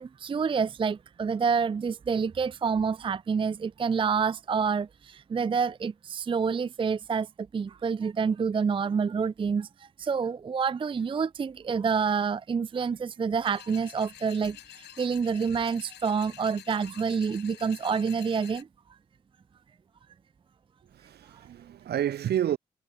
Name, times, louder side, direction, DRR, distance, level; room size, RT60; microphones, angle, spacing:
voice 1, 0.0-7.3 7.5-18.7, right 6 dB, 30° right, 0.4 m, -28 dB
sound 1, 13.4-18.6, left 12 dB, 80° left, 2.6 m, -48 dB
voice 2, 20.8-22.6, right 11 dB, 70° right, 1.7 m, -30 dB
supercardioid pair, 50°, 17 cm